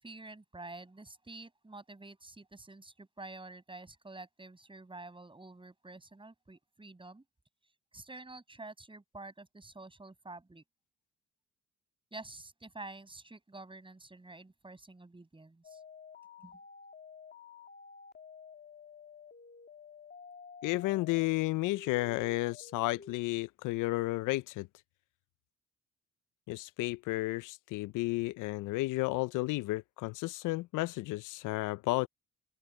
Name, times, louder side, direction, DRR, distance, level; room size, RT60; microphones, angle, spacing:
voice 1, 0.0-7.2 7.9-10.6 12.1-15.8 16.4-16.6, right 2 dB, 15° right, 6.8 m, -49 dB
sound 1, 15.6-21.3 21.7-23.2, left 6 dB, 35° left, 2.3 m, -52 dB
voice 2, 20.6-24.7 26.5-32.1, left 20 dB, 90° left, 0.5 m, -32 dB
open air
cardioid pair, 90°, 30 cm